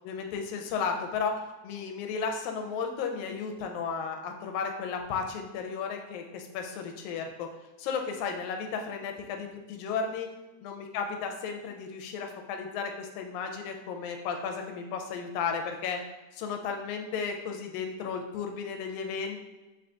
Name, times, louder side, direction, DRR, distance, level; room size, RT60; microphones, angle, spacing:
voice 1, 0.0-1.3 1.6-7.5 7.8-10.3 10.6-16.0 16.3-19.4, left 5 dB, 80° left, 3 dB, 1.8 m, -34 dB
3.9 x 3.7 x 2.3 m, 1.1 s
omnidirectional pair, 3.6 m